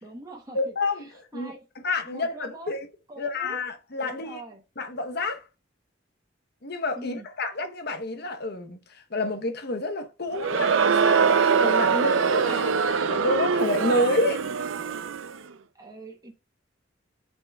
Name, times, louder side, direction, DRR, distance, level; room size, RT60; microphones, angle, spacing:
voice 1, 0.0-1.6 2.0-2.7 3.1-3.6 4.0-4.6 6.9-7.3 15.7-16.3, right 1 dB, 20° right, 0.9 m, -43 dB
voice 2, 0.5-1.0 1.3-1.5 1.8-2.9 3.2-4.4 4.8-5.4 6.6-8.8 9.1-14.4, left 2 dB, 55° left, 0.9 m, -29 dB
Crowd, 10.3-15.3, right 6 dB, 85° right, 0.5 m, -23 dB
9.6 x 4.4 x 2.3 m
head